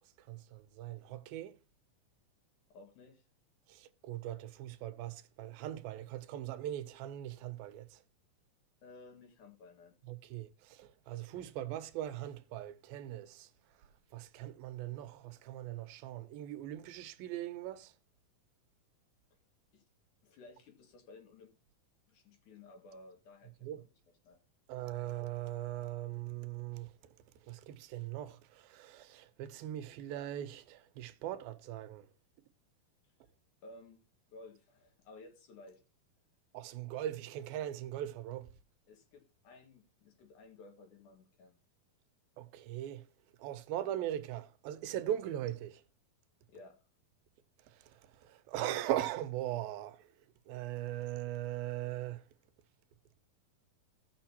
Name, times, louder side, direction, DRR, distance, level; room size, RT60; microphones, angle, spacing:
voice 1, 0.3-1.6 3.7-8.0 10.1-13.5 14.1-17.9 23.6-23.8 24.7-26.9 27.5-32.1 36.5-38.5 42.4-43.1 43.4-45.8 47.7-47.8 48.2-50.1 50.5-52.2, right 12 dB, 85° right, 2.6 m, -40 dB
voice 2, 2.7-3.2 8.8-9.9 19.7-19.8 20.2-21.5 22.1-23.9 24.2-24.4 33.6-34.0 34.3-35.8 38.9-41.6 46.5-46.8, left 3 dB, 60° left, 3.1 m, -55 dB
17.0 x 6.5 x 2.8 m
omnidirectional pair, 4.1 m